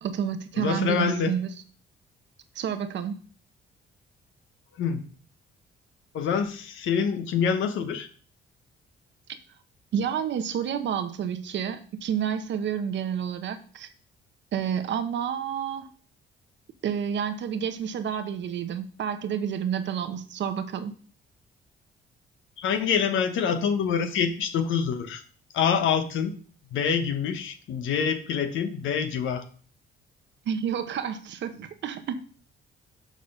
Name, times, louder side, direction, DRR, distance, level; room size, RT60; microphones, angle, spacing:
voice 1, 0.0-1.5 2.5-3.2 9.9-13.9 14.5-15.9 16.8-20.9 30.5-32.2, right 8 dB, 65° right, 1.0 m, -29 dB
voice 2, 0.6-1.3 4.8-5.0 6.1-8.1 22.6-25.2 25.5-26.3 26.7-29.4, left 7 dB, 80° left, 1.0 m, -26 dB
6.5 x 4.0 x 6.4 m
cardioid pair, 90°, 20 cm